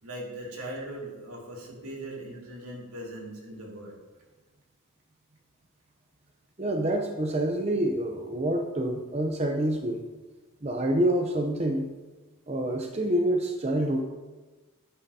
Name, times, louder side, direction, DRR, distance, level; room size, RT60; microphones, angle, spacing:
voice 1, 0.0-3.9, right 1 dB, 80° right, -2 dB, 2.6 m, -39 dB
voice 2, 6.6-10.0 10.6-11.9 12.5-14.0, right 1 dB, 30° right, 2 dB, 0.7 m, -27 dB
11.0 x 9.9 x 2.8 m, 1.2 s
head